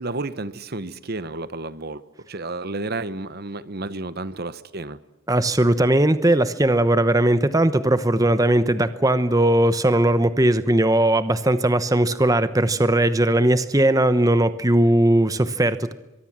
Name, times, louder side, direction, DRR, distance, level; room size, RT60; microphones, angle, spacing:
voice 1, 0.0-2.0 2.3-5.0, right 2 dB, 45° right, 15 dB, 1.0 m, -31 dB
voice 2, 5.3-15.9, right 1 dB, 15° right, 12 dB, 0.9 m, -19 dB
24.0 x 23.0 x 7.5 m, 1.0 s
head